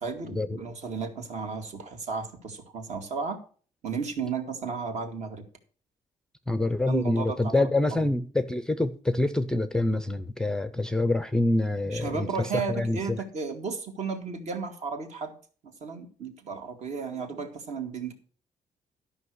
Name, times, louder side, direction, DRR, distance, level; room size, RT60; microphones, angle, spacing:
voice 1, 0.0-3.4 3.8-5.4 6.9-7.5 7.9-8.1 11.9-15.3 15.8-18.1, right 5 dB, 55° right, 2.3 m, -34 dB
voice 2, 6.5-13.2, left 2 dB, 5° left, 0.6 m, -26 dB
12.5 x 5.7 x 6.2 m
cardioid pair, 150°, 14 cm